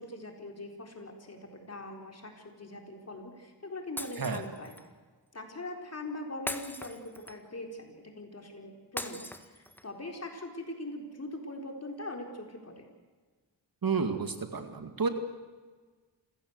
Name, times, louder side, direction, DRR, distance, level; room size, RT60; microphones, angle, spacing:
voice 1, 0.0-4.8 5.3-9.2 9.5-12.9, left 1 dB, 35° left, 3 dB, 4.3 m, -42 dB
Shatter, 4.0-4.9 6.5-7.6 9.0-10.0, left 1 dB, 5° left, 1.6 m, -40 dB
voice 2, 13.8-15.1, right 5 dB, 50° right, 7 dB, 2.1 m, -30 dB
27.5 x 16.5 x 8.2 m, 1.4 s
wide cardioid pair, 110°, 45 cm